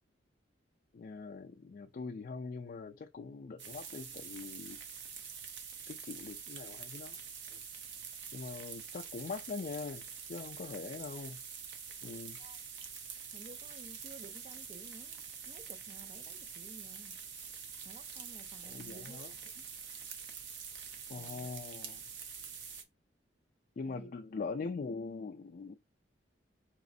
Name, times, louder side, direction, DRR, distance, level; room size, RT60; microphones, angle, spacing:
voice 1, 0.9-4.8 5.9-7.2 7.5-7.6 8.3-11.4 12.0-12.4 18.6-19.3 21.1-22.0 23.8-25.8, left 4 dB, 45° left, 0.3 m, -42 dB
sound 1, 3.6-22.8, right 6 dB, 75° right, 0.7 m, -46 dB
voice 2, 13.3-17.2 17.9-19.6 21.2-21.5 23.8-24.1, right 3 dB, 35° right, 0.3 m, -54 dB
4.9 x 3.0 x 2.6 m
head